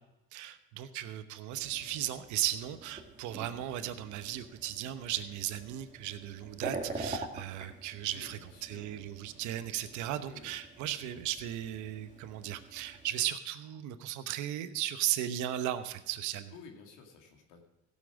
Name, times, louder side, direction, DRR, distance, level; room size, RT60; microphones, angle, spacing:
voice 1, 0.3-16.5, right 12 dB, 80° right, 10 dB, 1.0 m, -36 dB
sound 1, 1.5-13.2, right 3 dB, 25° right, 2.3 m, -46 dB
voice 2, 8.1-9.5 10.2-10.5 16.5-17.7, left 5 dB, 85° left, 2 dB, 2.4 m, -53 dB
15.5 x 7.4 x 5.0 m, 0.94 s
cardioid pair, 100°, 29 cm